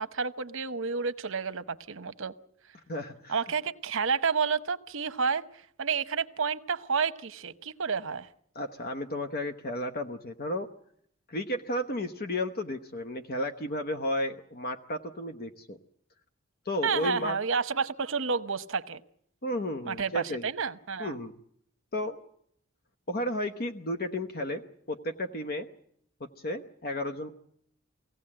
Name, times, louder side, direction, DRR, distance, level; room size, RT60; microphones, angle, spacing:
voice 1, 0.0-2.3 3.3-8.3 16.8-19.0 19.8-21.2, right 5 dB, 65° right, 11 dB, 0.9 m, -30 dB
voice 2, 2.9-3.4 8.5-10.7 11.3-15.8 16.6-17.4 19.4-20.5 21.0-21.3 21.9-22.2 23.1-24.6 24.9-25.7 26.2-27.3, left 1 dB, 50° left, 7 dB, 1.0 m, -33 dB
23.5 x 17.0 x 8.7 m, 0.70 s
head